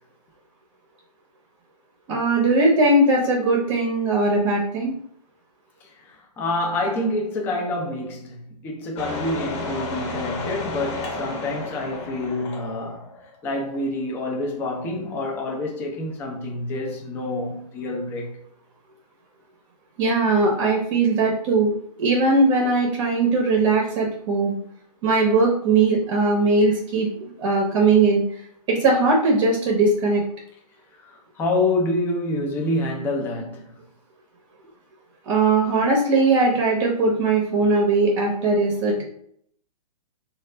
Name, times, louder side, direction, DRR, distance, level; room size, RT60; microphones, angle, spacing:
voice 1, 2.1-4.9 20.0-21.7 22.0-24.6 25.0-28.2 28.7-30.2 35.3-39.0, right 3 dB, 35° right, 0.7 m, -19 dB
voice 2, 6.1-13.1 13.4-18.4 31.0-33.8, left 2 dB, 10° left, 0.4 m, -27 dB
sound 1, 9.0-13.4 13.7-13.8, left 3 dB, 45° left, 0.9 m, -32 dB
3.2 x 2.4 x 3.2 m
hypercardioid pair, 150°, 20 cm